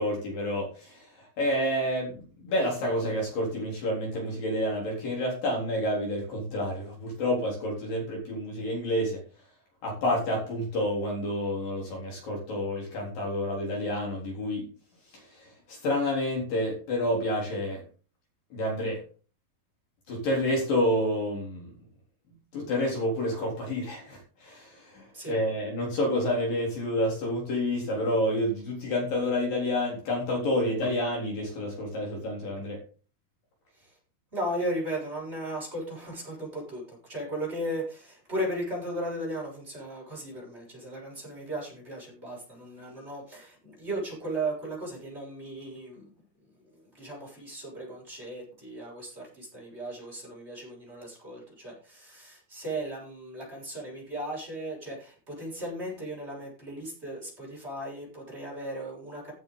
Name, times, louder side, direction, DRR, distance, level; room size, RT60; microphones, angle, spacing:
voice 1, 0.0-9.2 9.8-14.7 15.1-17.8 18.5-19.0 20.1-21.7 22.5-32.8, left 1 dB, 55° left, -1 dB, 5.3 m, -29 dB
voice 2, 34.3-46.1 46.7-59.3, right 1 dB, 15° right, -3 dB, 7.1 m, -36 dB
15.5 x 8.8 x 4.0 m, 0.37 s
omnidirectional pair, 4.8 m